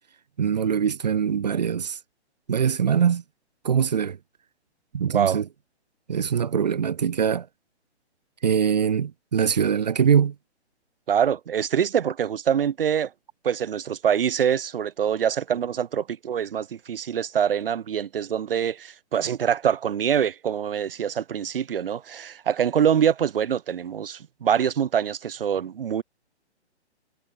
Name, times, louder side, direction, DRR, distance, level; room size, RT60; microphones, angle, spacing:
voice 1, 0.4-2.0 2.5-3.2 3.6-4.2 4.9-5.4 6.1-7.5 8.4-10.3, right 7 dB, 35° right, 1.1 m, -22 dB
voice 2, 5.1-5.4 11.1-13.1 13.4-26.0, right 8 dB, 55° right, 0.6 m, -24 dB
hypercardioid pair, 175°, 35 cm